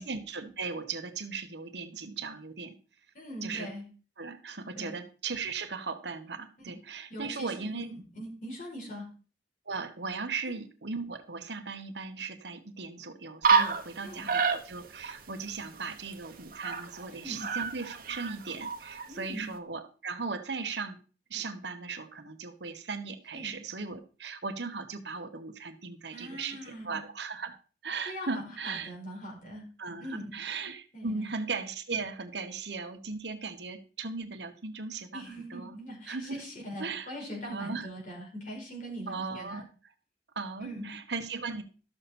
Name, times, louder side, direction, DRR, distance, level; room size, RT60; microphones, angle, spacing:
voice 1, 0.0-2.7 3.4-3.7 4.2-7.9 9.7-21.0 21.3-27.6 27.8-28.9 29.8-35.8 36.1-36.4 36.8-37.1 37.5-37.9 39.1-39.7 40.3-41.6, right 4 dB, 75° right, 7 dB, 1.2 m, -37 dB
voice 2, 3.1-3.8 4.8-4.9 6.6-6.7 7.1-9.1 10.4-10.5 14.0-14.3 17.1-17.5 19.1-19.5 23.3-23.6 26.1-27.0 28.0-29.6 30.0-30.3 30.9-31.3 35.1-39.6 40.6-40.9, equal, 45° left, -1 dB, 4.9 m, -41 dB
sound 1, 13.4-14.0 14.3-15.2 15.4-15.5 15.8-17.1 17.3-19.1, right 5 dB, 55° right, 1.2 m, -28 dB
13.0 x 6.9 x 4.4 m, 0.37 s
head